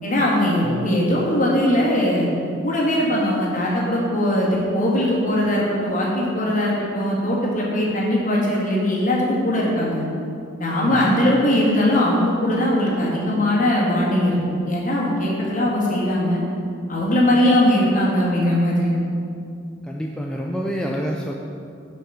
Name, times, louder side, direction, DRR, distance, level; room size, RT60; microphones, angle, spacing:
voice 1, 0.0-2.3 2.6-10.0 10.6-14.4 14.7-16.4 16.9-18.9, left 1 dB, 40° left, -4 dB, 1.7 m, -20 dB
voice 2, 10.8-11.2 19.8-21.3, equal, 5° left, -1 dB, 0.3 m, -28 dB
6.3 x 4.8 x 6.7 m, 2.5 s
head